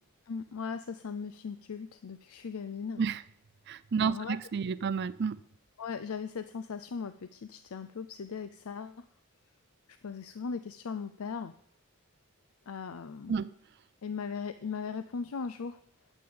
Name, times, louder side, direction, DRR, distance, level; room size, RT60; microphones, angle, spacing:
voice 1, 0.3-3.0 4.0-4.4 5.8-9.0 10.0-11.5 12.7-13.4 14.0-15.8, left 5 dB, 75° left, 0.5 m, -38 dB
voice 2, 3.7-5.4 13.3-13.5, right 6 dB, 50° right, 0.4 m, -30 dB
9.8 x 7.0 x 7.8 m
head